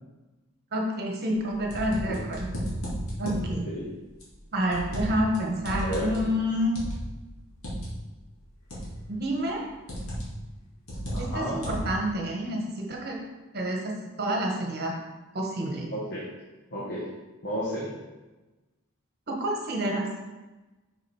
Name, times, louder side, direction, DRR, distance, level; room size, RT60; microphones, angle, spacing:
voice 1, 0.7-2.5 3.2-3.7 4.5-6.8 9.1-9.6 11.2-13.2 13.5-13.9 14.2-14.9 15.3-15.9 19.3-20.1, equal, 45° right, 0 dB, 1.3 m, -28 dB
sound 1, 1.3-3.5 4.2-5.4 5.6-7.9 8.7-9.1 9.9-10.4 10.9-12.0, equal, 70° left, 2.1 m, -33 dB
voice 2, 5.7-6.0 11.1-11.6 15.9-16.3 16.7-17.1 17.4-17.9, equal, 50° left, -7 dB, 1.4 m, -32 dB
6.0 x 5.2 x 4.4 m, 1.1 s
head